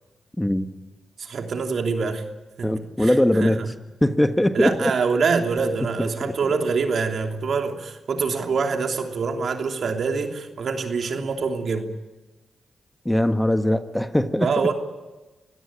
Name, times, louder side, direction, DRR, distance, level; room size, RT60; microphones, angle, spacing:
voice 1, 0.4-0.7 2.6-3.7 4.0-4.9 6.0-6.3 13.0-14.5, left 1 dB, 10° left, 1.5 m, -21 dB
voice 2, 1.2-2.2 2.6-3.7 4.5-11.9 14.4-14.7, right 5 dB, 65° right, 3.1 m, -25 dB
26.0 x 16.5 x 9.0 m
supercardioid pair, 40°, 0 cm